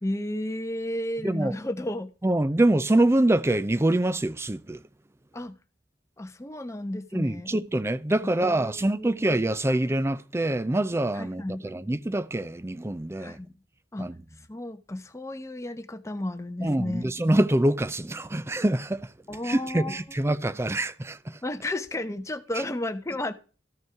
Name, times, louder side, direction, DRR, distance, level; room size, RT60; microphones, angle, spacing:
voice 1, 0.0-2.1 5.3-5.6 6.2-7.5 8.2-9.2 11.1-11.8 13.2-13.5 13.9-14.1 14.5-17.1 19.3-20.0 21.4-23.3, left 1 dB, 15° left, 0.8 m, -33 dB
voice 2, 1.2-1.5 2.2-4.8 7.1-13.4 14.0-14.1 16.6-19.1 19.4-21.4, right 1 dB, 15° right, 0.4 m, -25 dB
13.0 x 5.3 x 4.6 m
head